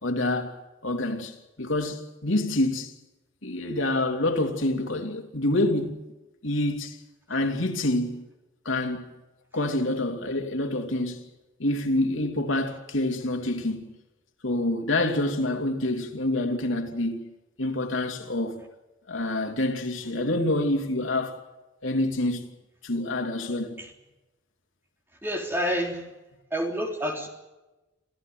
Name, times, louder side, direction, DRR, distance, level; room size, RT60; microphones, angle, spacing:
voice 1, 0.0-2.9 3.4-6.0 6.4-7.0 7.3-8.3 8.6-9.1 9.5-11.3 11.6-13.9 14.4-17.2 17.6-18.6 19.1-21.4 21.8-22.5 22.8-23.7, left 1 dB, 85° left, 3.0 m, -27 dB
voice 2, 25.2-26.1 26.5-27.3, equal, 10° right, 3.5 m, -28 dB
27.5 x 15.5 x 9.3 m
head